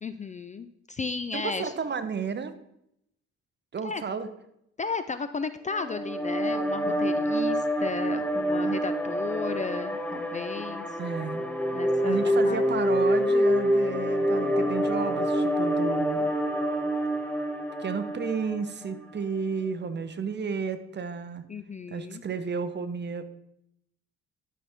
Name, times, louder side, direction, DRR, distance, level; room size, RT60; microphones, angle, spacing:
voice 1, 0.0-1.7 3.8-4.0 4.8-11.0 11.7-12.6 21.5-22.2, left 4 dB, 25° left, 11 dB, 0.4 m, -34 dB
voice 2, 1.3-2.5 3.7-4.3 6.8-7.0 11.0-11.5 12.0-16.3 17.8-21.5 21.9-23.2, right 6 dB, 35° right, 11 dB, 0.8 m, -32 dB
sound 1, 5.7-19.0, equal, 5° left, 0.9 m, -27 dB
11.5 x 5.8 x 3.5 m, 0.79 s
cardioid pair, 90°, 30 cm